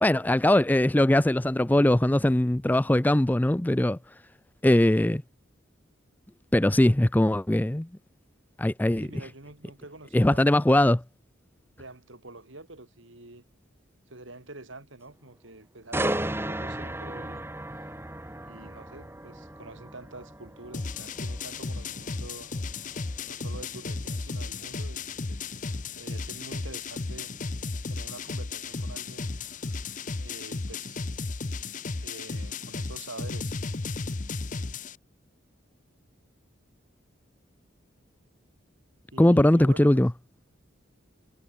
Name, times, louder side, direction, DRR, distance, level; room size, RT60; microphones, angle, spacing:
voice 1, 0.0-4.0 4.6-5.2 6.5-7.9 8.6-9.1 10.1-11.0 39.2-40.1, left 1 dB, 10° left, 0.4 m, -21 dB
voice 2, 9.0-10.9 11.8-13.4 14.1-17.5 18.5-22.5 23.2-25.6 25.9-27.3 27.9-29.4 30.2-31.0 32.0-33.6 39.1-40.0, right 2 dB, 70° right, 3.2 m, -46 dB
sound 1, 15.9-29.8 30.2-30.4, right 1 dB, 10° right, 1.8 m, -37 dB
sound 2, 20.7-35.0, left 3 dB, 40° left, 0.8 m, -34 dB
head